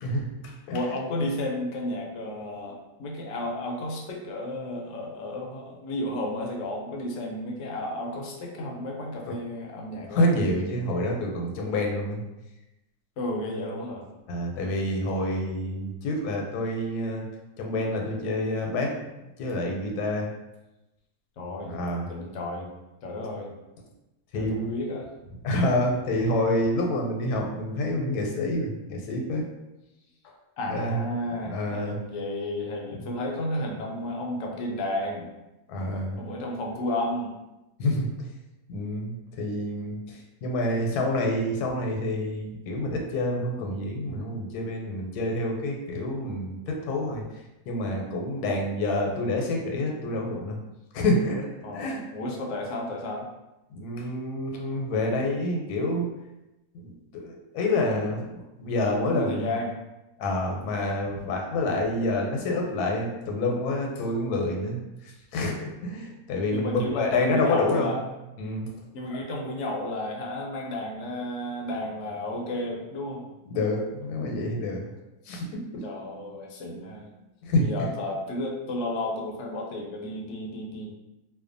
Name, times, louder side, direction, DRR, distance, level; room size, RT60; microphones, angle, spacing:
voice 1, 0.0-0.8 9.3-9.4 10.1-12.2 14.3-17.2 17.6-18.9 19.4-20.3 21.6-22.0 24.3-24.7 25.4-29.5 30.7-31.0 31.5-32.0 35.7-36.2 37.8-38.1 38.7-47.2 47.7-50.6 50.9-52.0 53.7-56.1 56.7-59.5 60.2-64.8 65.3-67.9 68.4-68.7 73.5-74.8 75.3-75.8 77.4-77.9, left 1 dB, 85° left, 1 dB, 1.1 m, -28 dB
voice 2, 0.7-10.2 13.2-14.1 21.4-21.8 22.1-22.7 23.0-23.5 24.3-25.1 30.6-35.3 36.2-37.3 51.6-53.3 59.1-59.8 66.5-68.0 68.9-73.3 75.8-77.2 77.6-80.9, left 1 dB, 65° left, 0 dB, 0.7 m, -32 dB
2.5 x 2.2 x 2.5 m, 0.98 s
omnidirectional pair, 1.6 m